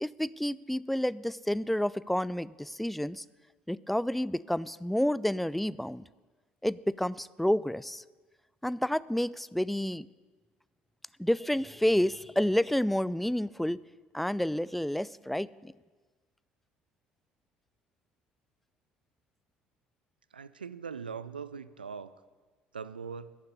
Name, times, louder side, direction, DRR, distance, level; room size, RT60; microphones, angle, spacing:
voice 1, 0.0-3.2 3.7-6.0 6.6-8.0 8.6-10.1 11.2-13.8 14.1-15.7, left 1 dB, ahead, 21 dB, 0.3 m, -29 dB
voice 2, 20.3-22.2 22.7-23.4, right 6 dB, 80° right, 15 dB, 0.4 m, -41 dB
11.0 x 10.5 x 6.9 m, 1.3 s
figure-of-eight pair, 60°, 5 cm